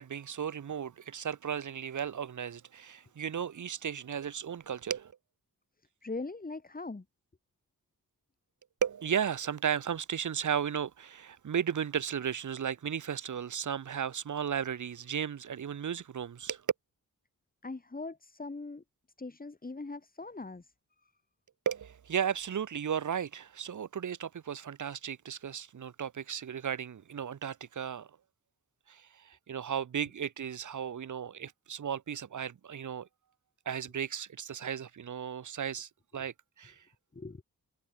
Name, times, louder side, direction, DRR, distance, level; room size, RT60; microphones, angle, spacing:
voice 1, 0.0-5.1 8.8-16.6 21.6-28.1 28.9-33.1 33.7-36.8, right 8 dB, 60° right, 1.0 m, -35 dB
voice 2, 6.0-7.0 17.6-18.8 19.2-20.7 21.0-21.1 37.1-37.4, left 3 dB, 25° left, 3.7 m, -41 dB
wide cardioid pair, 140°, 35 cm